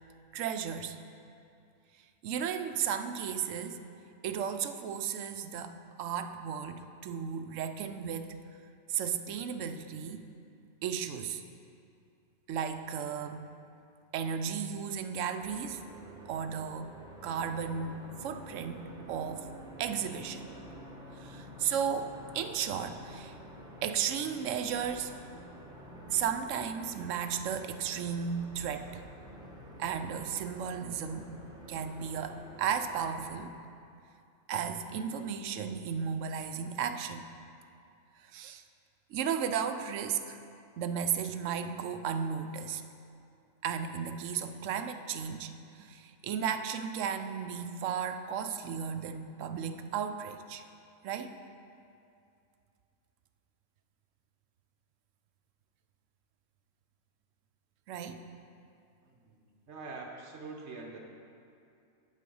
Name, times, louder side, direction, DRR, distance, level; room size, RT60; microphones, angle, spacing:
voice 1, 0.3-1.0 2.2-3.8 4.2-8.4 8.9-10.3 10.8-11.4 12.5-13.5 14.1-15.8 16.3-16.9 17.2-19.5 19.8-20.4 21.1-23.4 23.8-25.1 26.1-29.0 29.8-31.4 31.7-33.5 34.5-37.3 38.2-38.6 39.1-40.4 40.8-42.8 43.6-50.6 51.0-51.4 57.9-58.2, right 7 dB, 70° right, 8 dB, 0.9 m, -34 dB
sound 1, 15.4-33.3, equal, 5° right, 0.8 m, -49 dB
voice 2, 59.0-59.4 59.7-61.0, right 3 dB, 55° right, 0 dB, 1.3 m, -44 dB
7.5 x 7.4 x 5.3 m, 2.5 s
omnidirectional pair, 1.4 m